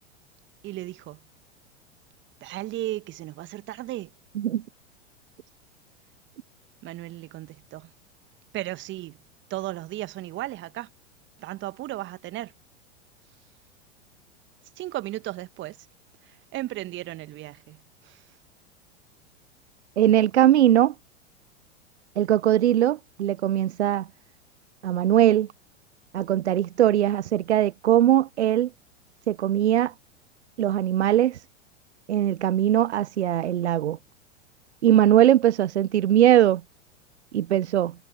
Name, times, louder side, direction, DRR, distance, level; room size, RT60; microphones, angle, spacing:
voice 1, 0.6-1.2 2.4-4.1 6.8-7.9 8.5-9.2 9.5-10.9 11.4-12.5 14.8-15.9 16.2-18.3, right 16 dB, 30° right, 1.9 m, -35 dB
voice 2, 20.0-20.9 22.2-24.1 24.8-25.5 26.1-28.7 29.3-29.9 30.6-31.4 32.1-34.0 34.8-36.6 37.3-37.9, right 12 dB, 65° right, 0.9 m, -20 dB
figure-of-eight pair, 90°, 36 cm